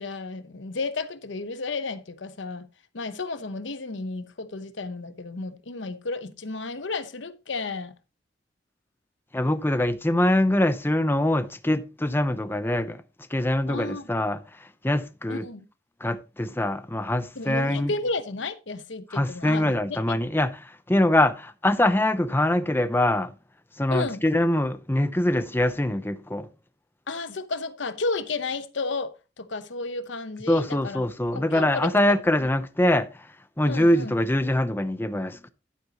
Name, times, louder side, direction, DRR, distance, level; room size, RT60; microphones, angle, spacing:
voice 1, 0.0-2.6 2.9-7.9 13.7-14.1 15.3-15.6 17.4-20.0 23.9-24.2 27.1-31.0 31.3-31.9 33.6-34.1, left 3 dB, 80° left, 0.9 m, -32 dB
voice 2, 9.3-13.0 13.3-15.5 16.0-17.9 19.1-23.3 23.8-26.5 30.5-35.5, left 1 dB, 10° left, 0.7 m, -24 dB
11.0 x 9.2 x 2.9 m
head